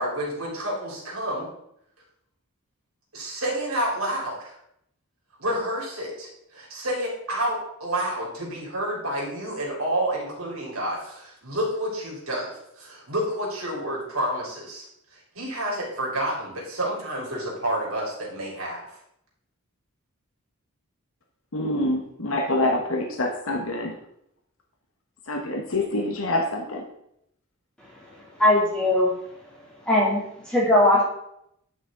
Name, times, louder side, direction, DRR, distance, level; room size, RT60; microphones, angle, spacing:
voice 1, 0.0-1.5 3.1-4.5 5.4-12.5 12.8-14.8 15.4-18.8, right 1 dB, 75° right, -3 dB, 3.7 m, -29 dB
voice 2, 21.5-24.0 25.3-26.8, left 1 dB, 70° left, 2 dB, 1.2 m, -26 dB
voice 3, 28.4-29.1 29.8-31.0, left 1 dB, 5° left, -6 dB, 2.9 m, -19 dB
10.5 x 6.0 x 3.8 m, 0.75 s
head